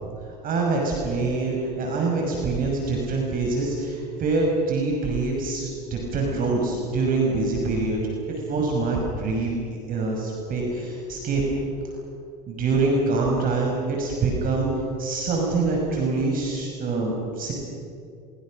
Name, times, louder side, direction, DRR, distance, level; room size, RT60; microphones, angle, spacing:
voice 1, 0.2-8.0 8.5-9.5 9.9-11.7 12.5-14.7 15.0-17.5, right 3 dB, 45° right, 0 dB, 6.2 m, -25 dB
29.5 x 23.0 x 6.5 m, 2.3 s
hypercardioid pair, 95°, 21 cm